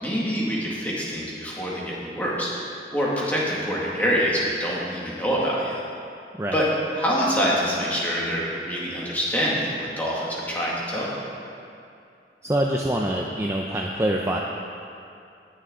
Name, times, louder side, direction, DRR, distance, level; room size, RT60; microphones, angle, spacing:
voice 1, 0.0-2.5 2.9-5.8 6.5-6.7 7.0-11.2, equal, 10° left, -6 dB, 1.9 m, -25 dB
voice 2, 12.4-14.4, right 1 dB, 15° right, -1 dB, 0.5 m, -25 dB
18.5 x 6.8 x 3.7 m, 2.5 s
head